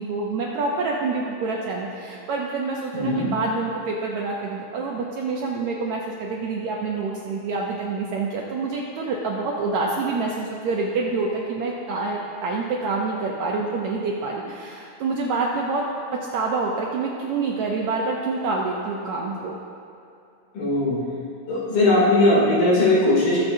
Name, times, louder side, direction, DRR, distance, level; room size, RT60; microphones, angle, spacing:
voice 1, 0.0-15.8 16.1-19.5, right 3 dB, 75° right, -2 dB, 1.7 m, -27 dB
voice 2, 2.9-3.3 20.5-21.0 21.5-23.4, left 1 dB, 85° left, -7 dB, 4.7 m, -19 dB
20.5 x 7.2 x 2.7 m, 2.6 s
omnidirectional pair, 4.1 m